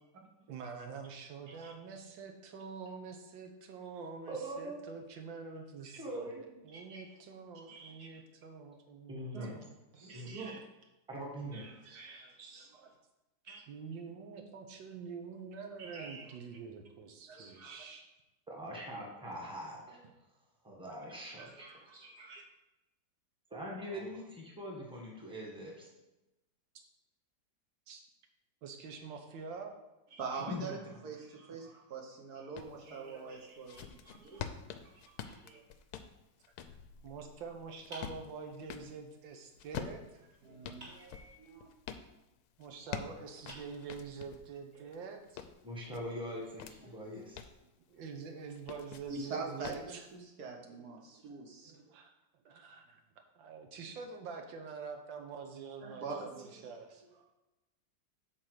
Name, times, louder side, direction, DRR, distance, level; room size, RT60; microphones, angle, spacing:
voice 1, 0.5-9.7 13.7-18.0 19.3-19.4 23.8-24.1 27.9-28.0 28.6-29.8 37.0-40.0 42.6-45.5 47.9-50.1 51.9-52.1 52.4-53.0 53.3-57.0, right 5 dB, 85° right, 4 dB, 1.7 m, -46 dB
voice 2, 4.3-4.8 6.0-6.6 9.1-9.5 10.1-10.3 11.1-11.6 18.5-20.0 20.6-21.8 23.5-25.9 30.5-30.7 45.6-47.4, equal, 5° right, -2 dB, 1.5 m, -42 dB
voice 3, 6.7-7.1 7.7-8.1 9.3-9.5 9.9-10.6 11.5-12.9 13.4-13.6 15.8-16.4 17.3-17.8 21.4-22.4 30.1-35.0 35.4-35.6 40.4-41.7 44.7-44.9 46.8-46.9 49.1-51.8 55.8-56.7, right 4 dB, 60° right, 1 dB, 1.5 m, -45 dB
sound 1, 32.6-32.8 33.3-38.9 39.6-42.1 42.6-44.5 44.9-46.8 47.2-47.6 48.5-49.2 49.6-49.9, left 8 dB, 70° left, 1.0 m, -46 dB
sound 2, 35.2-36.2 37.9-38.9 40.8-41.7 42.9-43.0 43.5-44.4, right 1 dB, 30° right, 2.6 m, -55 dB
8.5 x 4.0 x 6.5 m, 1.0 s
omnidirectional pair, 2.0 m